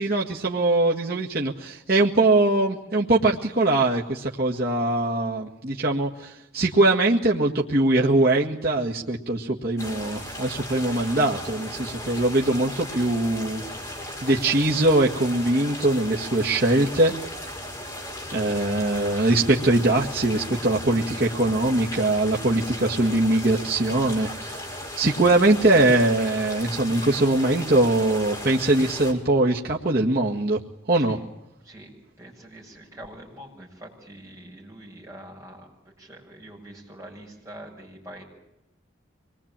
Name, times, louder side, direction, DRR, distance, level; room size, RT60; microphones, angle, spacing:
voice 1, 0.0-13.6 14.2-17.1 18.3-24.7 25.0-30.6 30.9-31.2, right 2 dB, 50° right, -2 dB, 1.8 m, -22 dB
sound 1, 9.8-29.1, left 1 dB, 15° left, 5.6 m, -36 dB
voice 2, 32.2-35.7 36.0-38.2, right 1 dB, 15° right, -2 dB, 7.5 m, -44 dB
25.5 x 21.0 x 8.9 m, 0.90 s
head